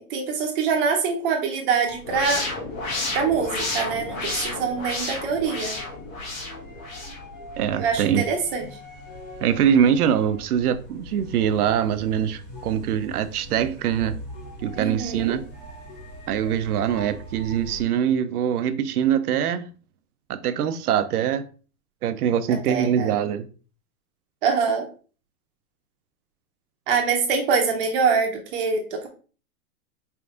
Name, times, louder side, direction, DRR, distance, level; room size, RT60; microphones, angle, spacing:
voice 1, 0.0-2.4 3.1-5.8 7.8-8.8 14.8-15.4 22.7-23.2 24.4-24.9 26.9-29.1, right 5 dB, 35° right, 0.8 m, -24 dB
sound 1, 1.8-17.8, equal, 20° left, 1.3 m, -42 dB
sound 2, 2.0-7.2, left 2 dB, 60° left, 1.4 m, -31 dB
voice 2, 7.6-8.2 9.4-14.2 14.6-15.4 16.3-19.7 20.3-21.5 22.0-23.5, right 9 dB, 75° right, 0.7 m, -23 dB
4.6 x 3.5 x 2.5 m
hypercardioid pair, 150°, 45 cm